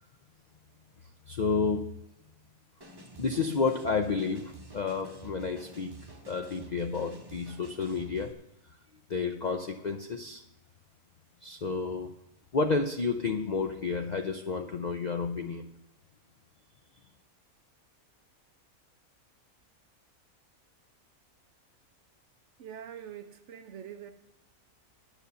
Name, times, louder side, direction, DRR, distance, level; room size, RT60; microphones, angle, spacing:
voice 1, 1.3-1.9 3.2-6.0 6.3-8.4 9.1-10.4 11.4-12.1 12.5-15.7, left 4 dB, 70° left, 0.4 m, -31 dB
sound 1, 2.8-8.3, right 1 dB, 20° right, 0.9 m, -49 dB
voice 2, 22.6-24.1, right 9 dB, 60° right, 0.9 m, -44 dB
10.0 x 8.4 x 6.8 m
omnidirectional pair, 1.5 m